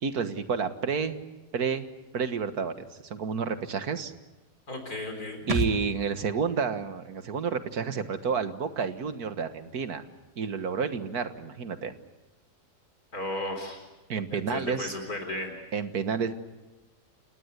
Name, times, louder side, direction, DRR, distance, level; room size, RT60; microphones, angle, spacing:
voice 1, 0.0-1.2 1.5-1.9 2.1-4.1 5.5-10.0 10.4-11.9 14.1-14.9 15.7-16.3, right 6 dB, 65° right, 10 dB, 2.0 m, -30 dB
voice 2, 4.7-5.5 13.1-13.8 14.3-15.6, left 1 dB, 60° left, 4 dB, 4.4 m, -35 dB
sound 1, 5.5-9.0 9.3-9.4, right 1 dB, 20° right, 1.6 m, -36 dB
30.0 x 19.0 x 8.2 m, 1.1 s
omnidirectional pair, 1.8 m